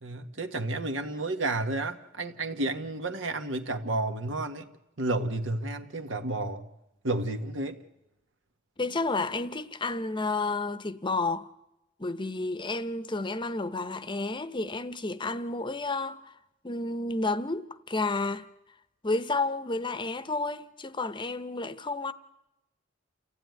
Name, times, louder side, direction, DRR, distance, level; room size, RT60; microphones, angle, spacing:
voice 1, 0.0-4.7 5.0-6.7 7.0-7.8, right 2 dB, 70° right, 1.6 m, -31 dB
voice 2, 8.8-11.5 12.0-16.3 16.6-18.5 19.0-22.1, left 3 dB, 25° left, 0.9 m, -31 dB
28.5 x 15.5 x 9.5 m
head